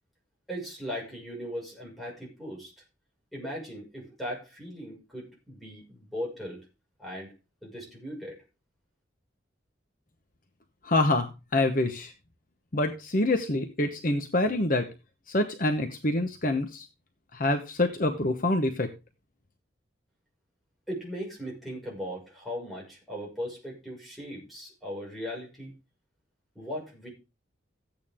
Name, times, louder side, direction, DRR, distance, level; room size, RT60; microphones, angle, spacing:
voice 1, 0.5-2.7 3.3-6.6 7.0-7.3 7.6-8.4 20.9-25.7 26.6-27.1, equal, ahead, -4 dB, 5.7 m, -38 dB
voice 2, 10.8-12.1 12.7-14.9 15.3-16.9 17.3-18.9, left 2 dB, 45° left, 6 dB, 1.0 m, -26 dB
14.5 x 8.9 x 3.6 m, 0.28 s
head